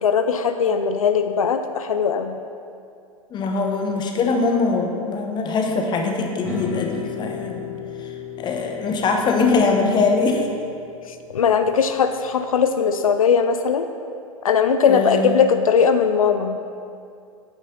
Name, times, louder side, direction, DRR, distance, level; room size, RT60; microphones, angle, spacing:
voice 1, 0.0-2.4 11.1-13.9 14.4-16.6, left 6 dB, 75° left, 8 dB, 0.4 m, -19 dB
voice 2, 3.3-8.1 8.4-10.5 14.9-15.4, left 4 dB, 25° left, 2 dB, 0.9 m, -22 dB
sound 1, 6.4-12.7, left 5 dB, 5° right, 1.6 m, -35 dB
8.5 x 4.7 x 5.3 m, 2.5 s
figure-of-eight pair, 95°, 18 cm